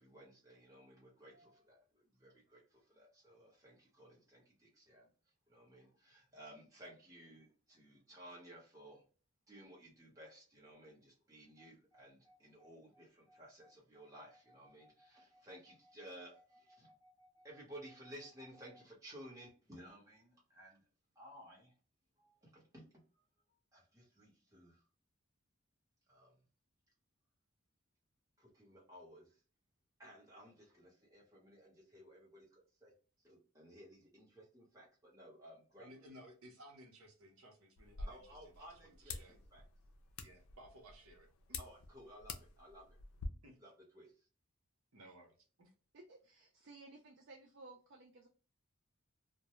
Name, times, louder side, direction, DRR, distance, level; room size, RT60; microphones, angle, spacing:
voice 1, 0.0-2.6 2.9-5.0 5.5-9.0 9.5-20.8 21.2-21.7 22.2-22.8 23.7-24.8 26.1-26.3 28.4-29.3 30.0-32.5 32.8-32.9 33.2-35.9 38.1-39.2 39.5-39.6 41.6-42.9 43.6-44.1, equal, 15° right, -5 dB, 1.0 m, -57 dB
voice 2, 35.8-39.4 40.2-41.6 43.4-43.6 44.9-45.7, right 1 dB, 80° right, 1 dB, 0.8 m, -59 dB
sound 1, 37.8-43.3, left 4 dB, 75° left, 0.4 m, -49 dB
voice 3, 45.9-48.3, right 2 dB, 55° right, 2 dB, 0.4 m, -57 dB
2.2 x 2.1 x 2.9 m, 0.38 s
head